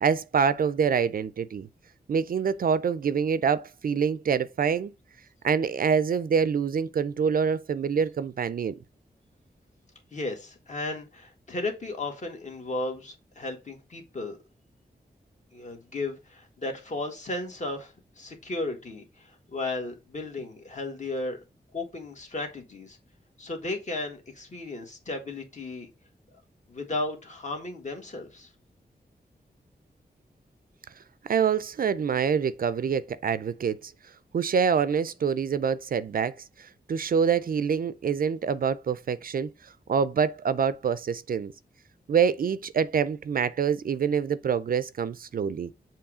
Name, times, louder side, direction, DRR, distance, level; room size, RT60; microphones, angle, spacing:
voice 1, 0.0-1.7 2.1-4.9 5.4-8.8 31.3-33.9 34.3-36.3 36.6-39.5 39.9-41.5 42.1-45.7, right 6 dB, 60° right, 0.4 m, -26 dB
voice 2, 10.1-14.4 15.5-21.4 21.7-23.0 23.4-25.9 26.7-28.5, left 2 dB, 45° left, 1.7 m, -34 dB
7.1 x 3.1 x 4.9 m
wide cardioid pair, 145°, 17 cm